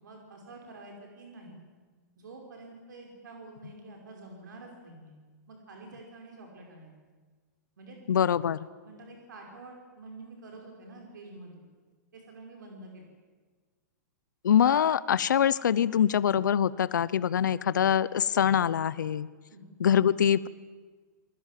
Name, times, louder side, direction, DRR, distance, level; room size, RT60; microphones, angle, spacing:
voice 1, 0.0-1.6 2.2-5.1 5.5-6.9 7.8-8.0 8.8-11.6 12.1-13.1 19.5-19.7, right 2 dB, 80° right, 1 dB, 5.5 m, -48 dB
voice 2, 8.1-8.6 14.4-19.3 19.8-20.5, left 9 dB, 85° left, 18 dB, 0.8 m, -24 dB
26.5 x 20.0 x 7.6 m, 1.4 s
hypercardioid pair, 145°, 10 cm